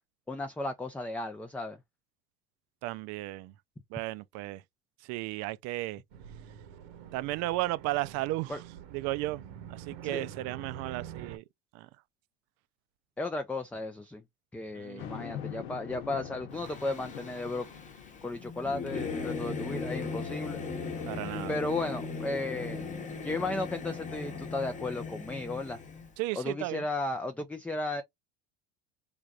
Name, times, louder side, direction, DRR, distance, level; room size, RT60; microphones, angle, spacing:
voice 1, 0.3-1.8 8.5-8.6 10.0-10.3 13.2-14.2 14.5-17.7 18.2-20.6 21.5-22.8 23.2-25.8 26.3-28.0, left 2 dB, 5° left, 0.3 m, -34 dB
voice 2, 2.8-3.5 3.9-4.6 5.1-6.0 7.1-8.6 8.9-9.4 9.7-11.4 11.7-11.9 14.7-15.2 21.1-21.6 26.2-26.8, right 18 dB, 60° right, 0.4 m, -34 dB
sound 1, 6.1-11.4, right 9 dB, 75° right, 1.0 m, -46 dB
sound 2, 15.0-20.5 21.0-21.1 25.0-26.1, left 10 dB, 80° left, 1.0 m, -46 dB
Singing / Musical instrument, 16.5-26.1, left 4 dB, 25° left, 0.9 m, -38 dB
3.3 x 2.6 x 2.3 m
supercardioid pair, 95°, 31 cm